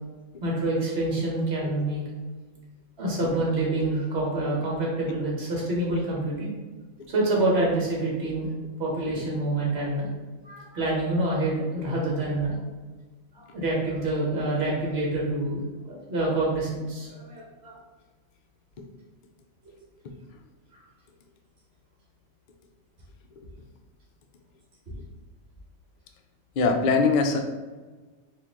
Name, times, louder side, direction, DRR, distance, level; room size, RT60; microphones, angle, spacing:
voice 1, 0.4-2.0 3.0-6.5 7.1-8.5 8.8-10.1 10.4-12.5 13.3-15.6 16.1-17.7 20.7-20.8, right 2 dB, 50° right, -3 dB, 1.5 m, -27 dB
voice 2, 26.6-27.5, left 4 dB, 85° left, 4 dB, 0.4 m, -22 dB
4.5 x 2.6 x 3.6 m, 1.3 s
omnidirectional pair, 1.4 m